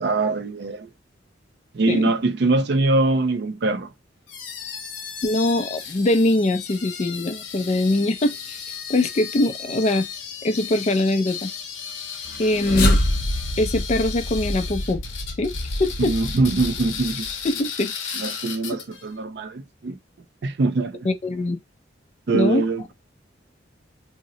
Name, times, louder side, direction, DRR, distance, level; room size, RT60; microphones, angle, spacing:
voice 1, 0.0-0.9 1.7-3.9 16.0-17.3 18.1-20.0 20.4-21.1 22.3-22.9, right 2 dB, 60° right, 0.4 m, -23 dB
sound 1, 4.3-19.1, left 7 dB, 85° left, 0.8 m, -35 dB
voice 2, 5.2-8.6 8.9-10.1 10.4-11.5 12.4-13.0 13.6-15.0 15.4-15.5 15.8-16.1 17.4-18.1 21.0-21.6 22.3-22.6, left 2 dB, 35° left, 0.4 m, -22 dB
sound 2, 12.1-17.4, left 1 dB, 55° left, 0.8 m, -26 dB
2.8 x 2.0 x 3.8 m
head